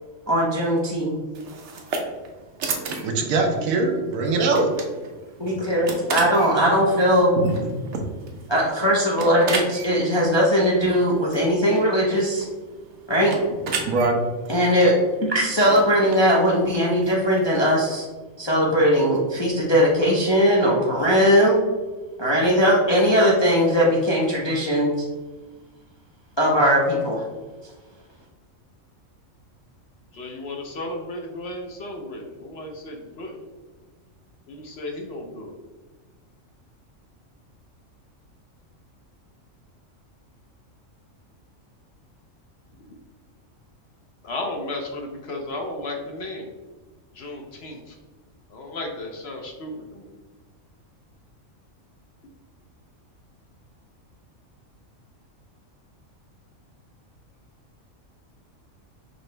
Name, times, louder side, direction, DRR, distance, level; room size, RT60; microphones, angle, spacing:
voice 1, 0.3-1.2 5.4-7.3 8.5-12.4 13.1-13.3 14.5-14.9 15.2-18.1 18.4-21.6 22.2-24.9 26.4-27.2, equal, 35° left, -4 dB, 0.4 m, -19 dB
sound 1, 1.3-17.8, right 4 dB, 65° right, 0.9 m, -35 dB
voice 2, 3.0-4.7 5.4-5.6 7.3-8.0 13.7-14.2, right 3 dB, 85° right, 3 dB, 1.1 m, -23 dB
voice 3, 30.1-33.4 34.5-35.5 42.7-43.0 44.2-46.5 47.1-48.0 48.5-50.1, left 2 dB, 60° left, 2 dB, 0.8 m, -34 dB
5.2 x 2.9 x 3.2 m, 1.3 s
omnidirectional pair, 1.4 m